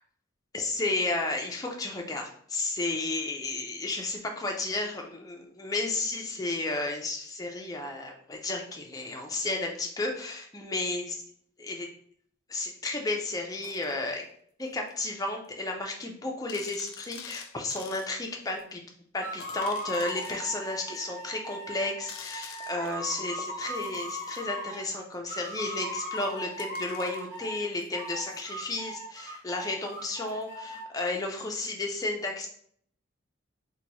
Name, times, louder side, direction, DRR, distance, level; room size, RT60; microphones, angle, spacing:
voice 1, 0.5-11.2 11.6-11.9 12.5-14.2 14.6-18.8 19.1-32.5, left 2 dB, 20° left, 2 dB, 0.4 m, -33 dB
sound 1, 13.6-13.9 14.9-15.0 15.4-15.5 15.8-15.9 16.5-18.1 18.6-18.7 19.4-20.4 20.9-21.0 22.1-23.0 23.6-24.4 25.4-28.4 30.3-30.4, left 8 dB, 90° left, 0.4 m, -48 dB
sound 2, 19.2-24.9 25.3-27.6 27.9-30.8, equal, 10° right, 1.2 m, -38 dB
2.9 x 2.2 x 3.9 m, 0.62 s
head